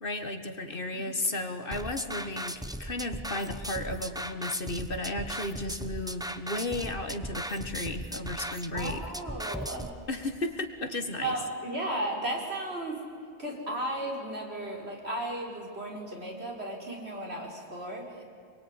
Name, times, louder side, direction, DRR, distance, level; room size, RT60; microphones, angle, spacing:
voice 1, 0.0-9.0 10.1-11.3, left 2 dB, 50° left, 7 dB, 1.9 m, -34 dB
sound 1, 1.7-9.9, right 1 dB, 5° right, 0.8 m, -37 dB
voice 2, 8.7-9.9 11.2-13.0 13.4-18.2, right 1 dB, 65° right, -1 dB, 5.2 m, -35 dB
26.5 x 22.5 x 9.9 m, 2.2 s
omnidirectional pair, 1.2 m